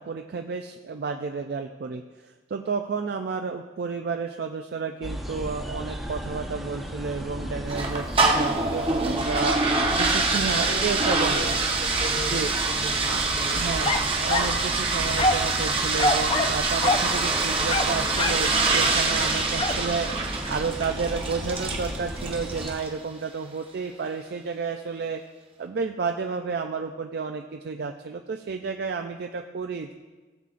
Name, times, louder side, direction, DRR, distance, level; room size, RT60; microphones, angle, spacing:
voice 1, 0.0-11.6 12.3-12.5 13.1-13.2 13.5-25.2 25.6-29.9, right 5 dB, 55° right, 5 dB, 0.4 m, -31 dB
sound 1, 5.0-22.7, equal, ahead, 0.9 m, -35 dB
sound 2, 7.7-22.9, right 3 dB, 30° right, 0.9 m, -25 dB
voice 2, 10.4-13.8, right 1 dB, 75° right, 1 dB, 1.5 m, -38 dB
sound 3, 13.8-14.6 15.2-15.5 16.0-16.6 16.8-17.1 17.7-18.5 19.6-19.8, left 2 dB, 25° left, 0.4 m, -25 dB
16.0 x 7.2 x 2.5 m, 1.3 s
head